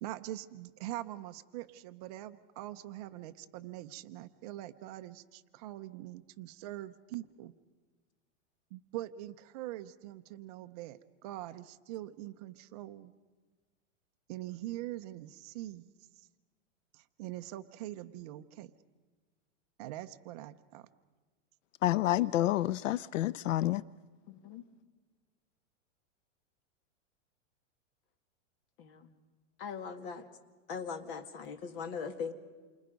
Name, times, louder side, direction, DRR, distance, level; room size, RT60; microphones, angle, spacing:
voice 1, 0.0-7.5 8.7-13.1 14.3-15.9 16.9-18.7 19.8-20.9, right 15 dB, 30° right, 0.7 m, -43 dB
voice 2, 21.8-23.8, left 14 dB, 85° left, 0.6 m, -29 dB
voice 3, 24.3-24.6 28.8-29.1 29.6-30.2 30.7-32.3, left 6 dB, 45° left, 2.2 m, -40 dB
29.0 x 25.5 x 5.2 m
supercardioid pair, 165°, 37 cm